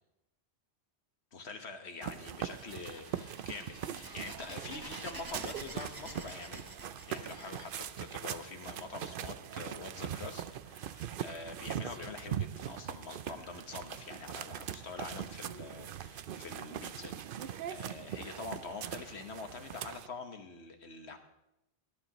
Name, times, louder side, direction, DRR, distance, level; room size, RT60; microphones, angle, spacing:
voice 1, 1.3-6.7 7.1-21.2, left 4 dB, 75° left, 6 dB, 1.6 m, -45 dB
sound 1, 2.0-20.1, right 10 dB, 60° right, 0.7 m, -41 dB
sound 2, 2.4-8.9, right 2 dB, 20° right, 1.0 m, -49 dB
19.5 x 12.5 x 3.1 m, 0.89 s
omnidirectional pair, 1.1 m